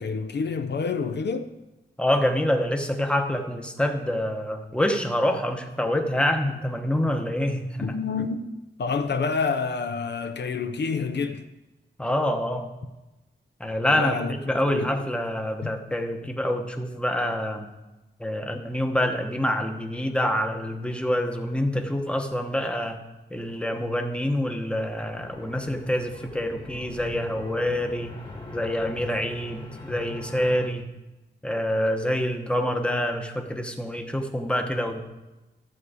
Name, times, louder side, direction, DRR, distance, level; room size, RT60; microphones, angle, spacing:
voice 1, 0.0-1.5 7.8-8.5 8.8-11.5 13.9-14.3 14.7-14.9 15.6-15.8, left 5 dB, 65° left, 0.6 m, -28 dB
voice 2, 2.0-8.0 12.0-12.7 13.6-17.7 18.2-23.0 23.3-28.1 28.5-30.9 31.4-35.0, left 1 dB, 5° left, 0.9 m, -26 dB
Some Ship, 24.9-30.7, left 2 dB, 25° left, 1.6 m, -41 dB
13.0 x 8.2 x 4.9 m
wide cardioid pair, 150°, 19 cm